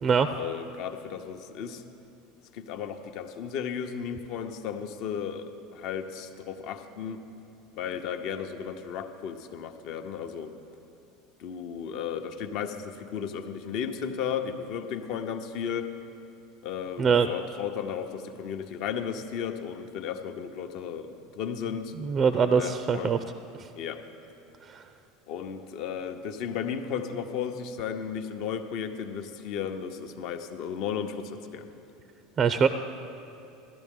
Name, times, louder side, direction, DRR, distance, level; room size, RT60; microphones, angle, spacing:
voice 1, 0.4-1.8 2.5-7.2 7.7-10.5 11.4-15.9 16.6-21.9 22.4-23.2 23.8-24.0 25.3-31.7, left 7 dB, 55° left, 7 dB, 0.8 m, -34 dB
voice 2, 17.0-17.3 22.0-23.2 23.6-23.7 24.7-24.8 32.4-32.7, right 6 dB, 35° right, 10 dB, 0.5 m, -23 dB
16.0 x 12.0 x 3.7 m, 2.9 s
hypercardioid pair, 80°, 0 cm